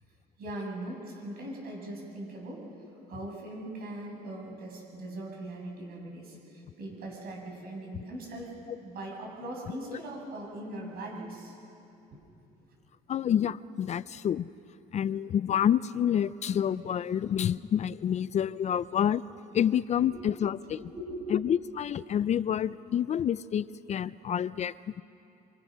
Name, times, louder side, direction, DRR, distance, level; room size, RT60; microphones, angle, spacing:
voice 1, 0.4-2.7 3.1-8.5 8.8-11.5 12.1-12.2 20.0-20.4 20.7-21.4, right 1 dB, 65° right, -1 dB, 7.5 m, -40 dB
voice 2, 13.1-14.5 14.9-19.2 19.5-20.8 21.3-25.0, left 9 dB, 40° left, 17 dB, 0.5 m, -28 dB
26.0 x 25.5 x 6.4 m, 2.8 s
cardioid pair, 110°, 17 cm